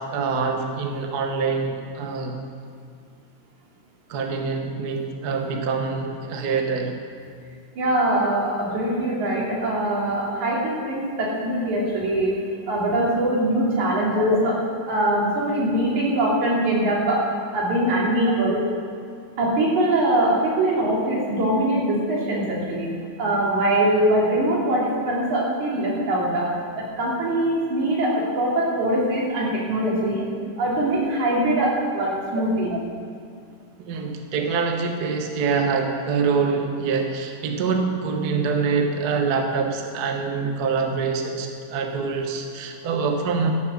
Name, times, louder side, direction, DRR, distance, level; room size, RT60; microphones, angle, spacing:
voice 1, 0.0-2.4 4.1-7.0 14.2-14.3 31.7-31.8 32.4-32.5 32.7-32.8 33.8-43.5, right 5 dB, 60° right, 3 dB, 1.0 m, -25 dB
voice 2, 7.8-12.4 12.7-14.5 14.9-17.2 17.5-18.6 19.4-22.9 23.2-30.2 30.6-32.7, right 1 dB, 80° right, -4 dB, 4.2 m, -22 dB
16.5 x 7.5 x 6.5 m, 2.3 s
omnidirectional pair, 3.4 m